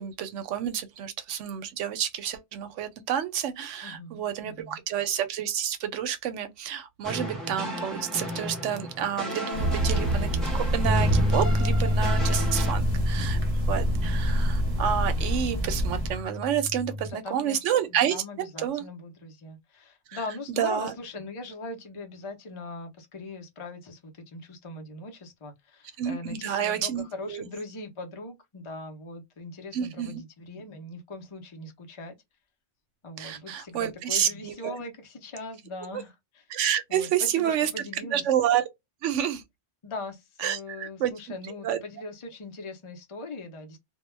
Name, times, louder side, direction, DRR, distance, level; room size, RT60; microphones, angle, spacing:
voice 1, 0.0-13.4 13.7-18.2 18.6-18.8 20.1-20.2 20.6-20.9 26.0-27.5 29.7-30.2 33.2-34.7 35.9-36.0 36.5-37.7 38.1-38.7 39.0-39.4 40.4-41.1 41.6-41.8, right 9 dB, 85° right, 0.9 m, -29 dB
voice 2, 3.8-4.8 13.8-14.2 17.0-17.6 17.9-32.2 33.0-36.4 36.9-38.3 39.8-43.8, left 2 dB, 35° left, 0.5 m, -40 dB
sound 1, 7.0-12.7, equal, ahead, 0.7 m, -35 dB
sound 2, 9.5-16.2, equal, 35° right, 0.7 m, -26 dB
sound 3, 10.8-17.1, left 1 dB, 65° left, 1.0 m, -30 dB
2.2 x 2.2 x 3.1 m
omnidirectional pair, 1.2 m